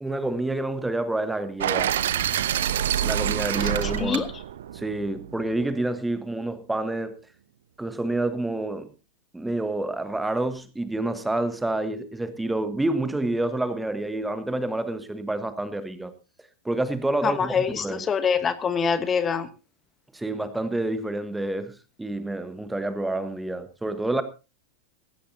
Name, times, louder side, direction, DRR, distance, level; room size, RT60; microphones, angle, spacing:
voice 1, 0.0-1.9 3.0-4.3 4.7-7.2 7.8-8.9 9.3-16.1 16.6-18.0 20.1-24.2, right 2 dB, 5° right, 1.2 m, -28 dB
sound 1, 1.6-5.6, right 10 dB, 60° right, 0.9 m, -27 dB
voice 2, 17.2-19.5, left 6 dB, 20° left, 1.3 m, -25 dB
18.5 x 16.0 x 2.8 m
figure-of-eight pair, 90°, 0 cm